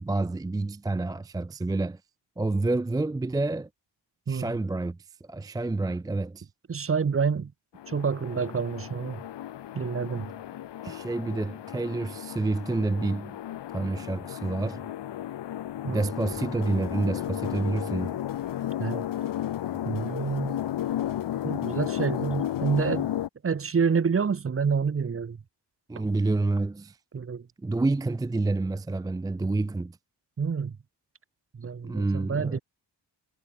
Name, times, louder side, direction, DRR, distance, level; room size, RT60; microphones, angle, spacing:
voice 1, 0.0-2.0 2.4-3.7 4.3-6.5 10.8-13.4 13.7-14.8 15.9-18.2 25.9-27.0 27.6-30.0 31.8-32.6, right 2 dB, 10° right, 0.3 m, -28 dB
voice 2, 6.7-7.5 7.9-9.2 9.7-10.3 15.8-16.0 18.8-19.1 19.8-20.6 21.4-23.1 23.4-25.4 27.1-27.5 30.4-30.7 31.6-32.6, right 6 dB, 30° right, 1.2 m, -28 dB
sound 1, 7.7-23.3, left 12 dB, 75° left, 1.1 m, -33 dB
sound 2, 16.2-22.9, left 7 dB, 50° left, 3.0 m, -56 dB
wide cardioid pair, 140°, 42 cm